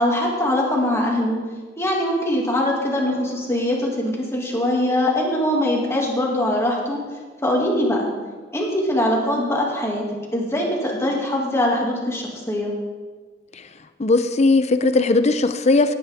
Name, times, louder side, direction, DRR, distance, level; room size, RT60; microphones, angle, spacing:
voice 1, 0.0-1.4 1.8-7.0 7.4-8.1 8.5-10.1 10.3-12.7, left 1 dB, 15° left, -2 dB, 2.3 m, -22 dB
voice 2, 14.0-15.9, left 3 dB, 35° left, 10 dB, 0.6 m, -18 dB
17.5 x 9.7 x 3.6 m, 1.4 s
head